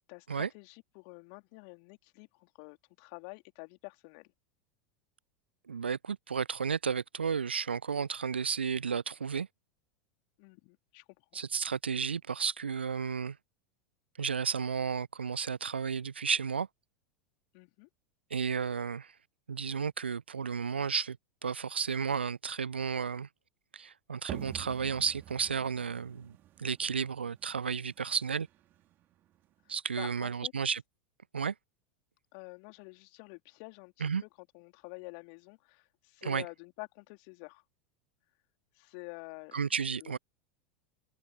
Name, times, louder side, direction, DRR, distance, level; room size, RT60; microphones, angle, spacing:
voice 1, 0.1-4.3 10.4-11.0 17.5-17.9 30.0-30.5 32.3-34.1 34.5-37.6 38.8-39.5 40.0-40.2, left 40 dB or more, 50° left, 3.1 m, -48 dB
voice 2, 5.7-9.5 11.3-13.4 14.2-16.7 18.3-19.1 19.5-21.2 21.4-23.3 23.7-26.3 26.6-28.5 29.7-30.8 31.3-31.5 34.0-34.2 36.2-36.5 39.5-40.2, right 6 dB, 75° right, 0.6 m, -32 dB
sound 1, 24.3-29.8, right 14 dB, 35° right, 3.7 m, -48 dB
figure-of-eight pair, 85°, 6 cm